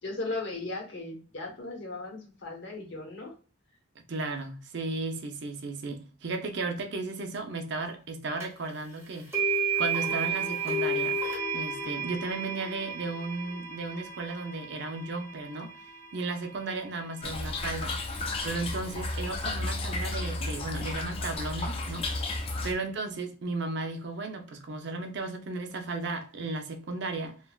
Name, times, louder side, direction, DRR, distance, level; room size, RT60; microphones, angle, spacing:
voice 1, 0.0-3.3, left 2 dB, 55° left, 1.0 m, -37 dB
voice 2, 4.1-9.5 9.8-11.2 11.5-15.7 16.1-18.0 18.4-22.1 22.6-27.4, right 3 dB, 55° right, 0.5 m, -35 dB
sound 1, 8.4-8.5 9.3-17.4, right 4 dB, 10° right, 0.8 m, -32 dB
Toilet flush / Trickle dribble, 17.2-22.7, left 2 dB, 25° left, 0.3 m, -33 dB
3.2 x 2.2 x 2.3 m
head